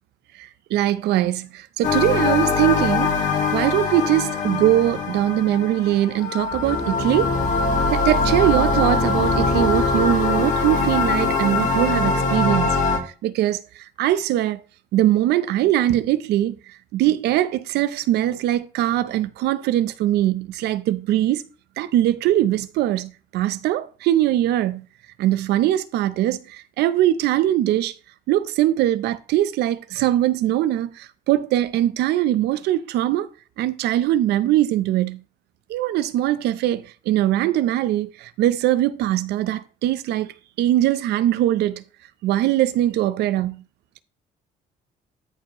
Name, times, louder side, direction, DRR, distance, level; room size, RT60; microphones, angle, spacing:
voice 1, 0.4-3.1 3.5-7.4 7.9-12.8 13.2-14.6 14.9-21.4 21.8-24.8 25.2-27.9 28.3-33.3 33.6-35.2 35.7-41.8 42.2-43.6, right 13 dB, 80° right, 0.7 m, -21 dB
sound 1, 1.8-13.0, left 4 dB, 45° left, 2.2 m, -22 dB
13.5 x 4.5 x 3.1 m
cardioid pair, 110°, 17 cm